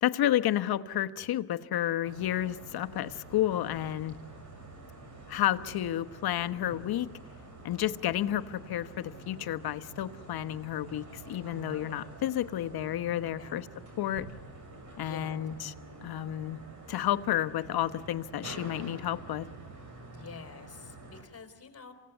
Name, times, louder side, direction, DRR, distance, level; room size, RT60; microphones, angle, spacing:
voice 1, 0.0-4.1 5.3-7.1 7.6-13.7 14.0-14.3 15.0-15.7 16.0-16.6 16.9-19.5, left 12 dB, 60° left, 11 dB, 1.1 m, -31 dB
sound 1, 2.1-21.2, right 2 dB, 40° right, 6.5 m, -48 dB
voice 2, 15.0-15.4 20.1-21.9, left 5 dB, 35° left, 6 dB, 4.0 m, -48 dB
27.0 x 17.0 x 8.3 m, 1.4 s
supercardioid pair, 85°, 43 cm